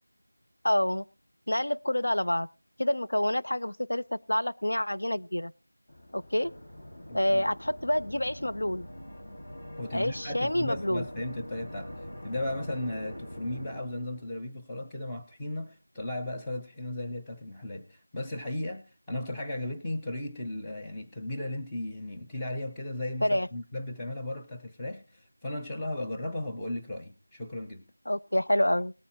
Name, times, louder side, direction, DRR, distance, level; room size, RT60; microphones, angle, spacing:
voice 1, 0.6-1.0 1.5-2.5 2.8-5.5 6.1-6.5 7.1-8.9 9.9-11.0 23.2-23.5 28.1-28.9, left 1 dB, 65° left, 0.8 m, -27 dB
sound 1, 5.9-14.4, equal, 30° left, 1.5 m, -44 dB
voice 2, 7.1-7.4 9.8-11.9 12.2-27.8, left 1 dB, 5° left, 0.5 m, -36 dB
19.0 x 9.5 x 2.8 m
figure-of-eight pair, 180°, 0 cm